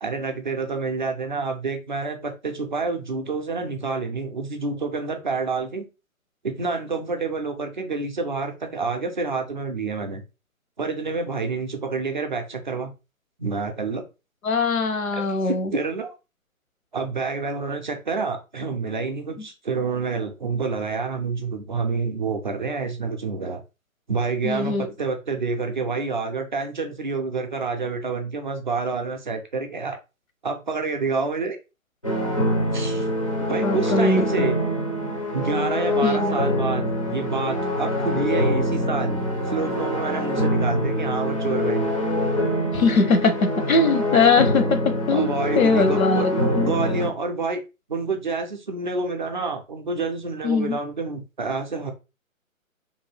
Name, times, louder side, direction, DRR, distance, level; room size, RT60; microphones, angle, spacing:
voice 1, 0.0-5.8 6.4-10.2 10.8-12.9 13.4-14.0 15.1-16.2 16.9-23.6 24.1-30.0 30.4-31.6 32.7-33.1 33.5-34.6 35.3-41.9 44.1-44.2 45.1-46.3 46.6-47.6 47.9-51.9, right 4 dB, 35° right, 5 dB, 0.4 m, -28 dB
voice 2, 14.4-15.7 24.4-24.9 33.6-34.5 36.0-36.4 42.7-46.7 50.4-50.8, left 3 dB, 75° left, 7 dB, 0.8 m, -21 dB
sound 1, 32.0-47.1, left 1 dB, 25° left, 0.4 m, -24 dB
2.7 x 2.4 x 3.1 m, 0.28 s
figure-of-eight pair, 140°, 42 cm